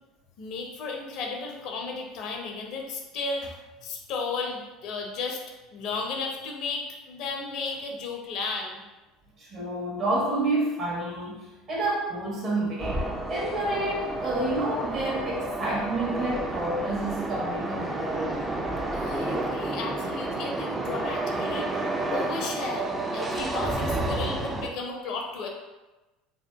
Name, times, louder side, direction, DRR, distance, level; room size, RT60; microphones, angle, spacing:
voice 1, 0.4-3.5 3.8-5.4 5.7-8.8 18.9-21.8 22.1-22.9 23.1-25.5, left 3 dB, 60° left, 1 dB, 0.5 m, -34 dB
voice 2, 9.4-18.4, right 2 dB, 45° right, -4 dB, 1.1 m, -29 dB
sound 1, 12.8-24.7, right 2 dB, 20° right, 0.4 m, -30 dB
2.7 x 2.3 x 2.3 m, 1.1 s
hypercardioid pair, 75°, 0 cm